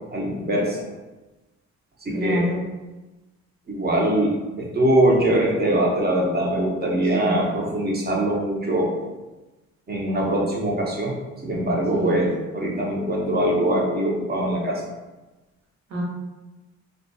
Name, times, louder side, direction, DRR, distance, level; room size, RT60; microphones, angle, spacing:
voice 1, 0.1-0.8 2.0-2.4 3.7-9.0 9.9-11.1 11.4-14.8, right 1 dB, 30° right, -2 dB, 0.7 m, -22 dB
voice 2, 2.1-2.6 7.2-7.5 11.9-12.4 15.9-16.0, equal, 65° right, -4 dB, 1.0 m, -27 dB
2.4 x 2.2 x 2.6 m, 1.1 s
cardioid pair, 90°, 30 cm